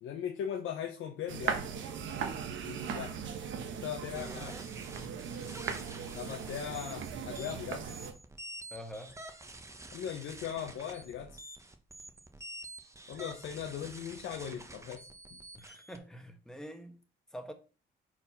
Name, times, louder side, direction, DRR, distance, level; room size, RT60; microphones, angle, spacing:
voice 1, 0.0-1.6 2.6-3.1 3.8-4.6 6.1-7.9 9.9-11.4 13.1-15.1, left 9 dB, 80° left, 0.9 m, -39 dB
sound 1, 1.3-8.1, right 7 dB, 70° right, 1.1 m, -38 dB
sound 2, 4.1-16.0, right 1 dB, 15° right, 0.9 m, -48 dB
voice 2, 8.7-9.1 15.5-17.0 17.3-17.5, equal, 5° left, 1.2 m, -45 dB
4.7 x 4.0 x 5.6 m
cardioid pair, 90°, 20 cm